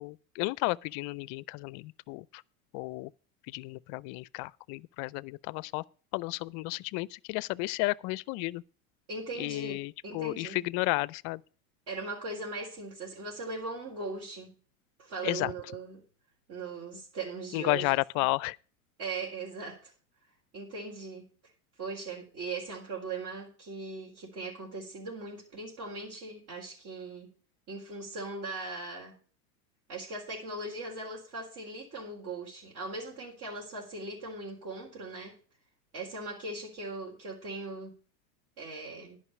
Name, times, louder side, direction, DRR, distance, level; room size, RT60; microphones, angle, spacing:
voice 1, 0.0-2.4 2.7-3.1 3.5-5.8 6.1-8.6 9.4-11.4 15.2-15.5 17.5-18.6, left 23 dB, 45° left, 0.4 m, -32 dB
voice 2, 9.1-10.6 11.9-14.5 15.0-16.0 16.5-17.9 19.0-19.9 20.5-21.3 21.8-27.3 27.7-29.2 29.9-35.4 35.9-38.0 38.6-39.2, right 3 dB, 50° right, 3.8 m, -39 dB
11.0 x 5.4 x 8.4 m
hypercardioid pair, 95°, 42 cm